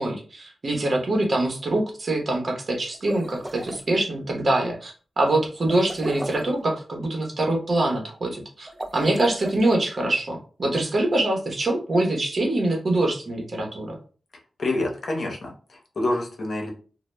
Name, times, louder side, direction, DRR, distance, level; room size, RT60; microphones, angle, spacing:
voice 1, 0.0-14.0, right 2 dB, 60° right, 1 dB, 0.8 m, -24 dB
sound 1, 2.9-3.8 5.7-6.6 8.7-9.8, right 1 dB, 20° right, 0.3 m, -35 dB
voice 2, 14.6-16.7, left 2 dB, 65° left, 1 dB, 0.7 m, -27 dB
2.1 x 2.0 x 3.1 m, 0.38 s
cardioid pair, 45°, 0 cm